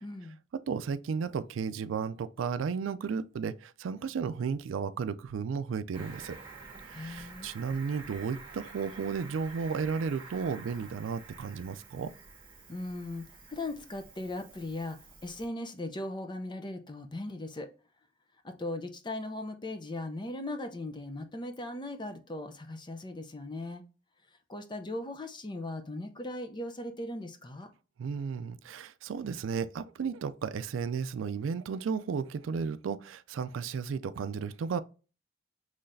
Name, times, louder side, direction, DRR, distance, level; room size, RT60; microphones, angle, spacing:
voice 1, 0.0-0.4 6.9-7.5 12.7-17.7 18.4-23.8 24.5-27.7, left 1 dB, 25° left, 0.6 m, -38 dB
voice 2, 0.7-6.4 6.9-12.1 28.0-34.8, right 6 dB, 90° right, 0.4 m, -34 dB
Cricket, 5.9-15.5, right 4 dB, 25° right, 1.6 m, -49 dB
5.7 x 3.2 x 2.6 m
head